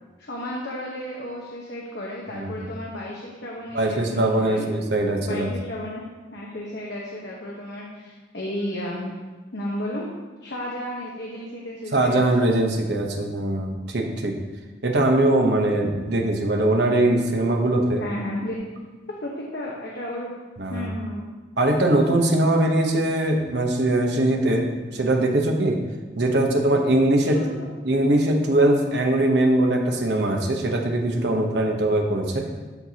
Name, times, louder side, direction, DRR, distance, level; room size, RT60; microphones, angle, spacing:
voice 1, 0.2-4.6 5.2-6.0 6.3-9.1 9.5-10.1 10.4-12.5 18.0-18.5 19.2-20.3 20.7-21.3 27.2-27.7, left 1 dB, 65° left, -3 dB, 1.0 m, -33 dB
voice 2, 3.7-5.5 11.9-14.3 14.8-18.0 20.6-20.9 21.6-25.8 26.2-27.6 27.8-32.4, right 1 dB, 65° right, 2 dB, 0.9 m, -21 dB
12.0 x 4.5 x 2.8 m, 1.3 s
head